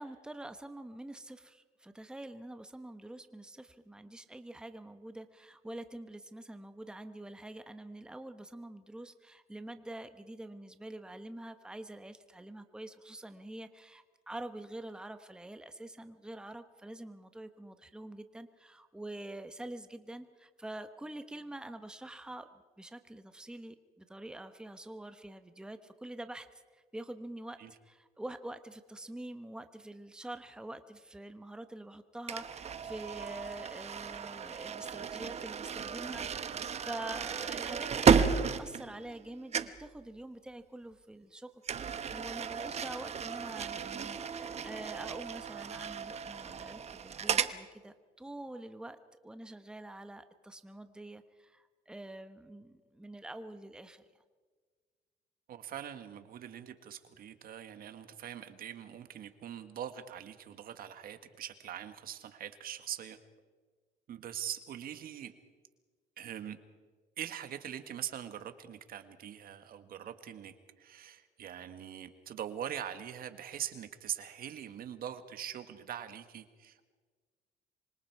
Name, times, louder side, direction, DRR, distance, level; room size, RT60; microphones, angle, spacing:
voice 1, 0.0-22.5 22.8-27.6 27.8-36.2 36.5-49.0 49.2-54.1, right 1 dB, 5° right, 9 dB, 1.2 m, -46 dB
sound 1, 32.3-39.3 39.5-39.9 41.6-47.6, right 6 dB, 40° right, 1.2 m, -33 dB
voice 2, 55.5-63.2 64.1-65.3 66.2-66.6 67.2-76.9, right 10 dB, 60° right, 10 dB, 1.7 m, -42 dB
26.0 x 25.0 x 4.8 m, 1.5 s
cardioid pair, 110°, 17 cm